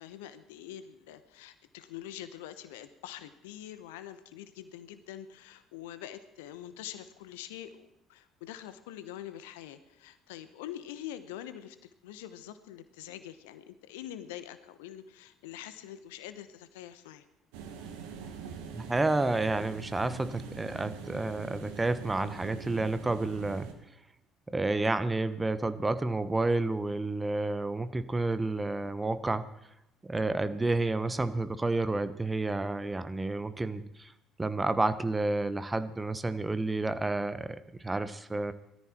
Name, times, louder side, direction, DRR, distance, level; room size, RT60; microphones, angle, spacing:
voice 1, 0.0-11.8 12.0-17.2, left 11 dB, 70° left, 12 dB, 1.0 m, -45 dB
sound 1, 17.5-23.7, right 6 dB, 70° right, 2.0 m, -44 dB
voice 2, 18.7-23.7 24.5-29.5 30.0-34.1 34.4-38.5, right 2 dB, 15° right, 12 dB, 1.2 m, -30 dB
20.5 x 13.5 x 4.4 m, 0.85 s
figure-of-eight pair, 55°, 0 cm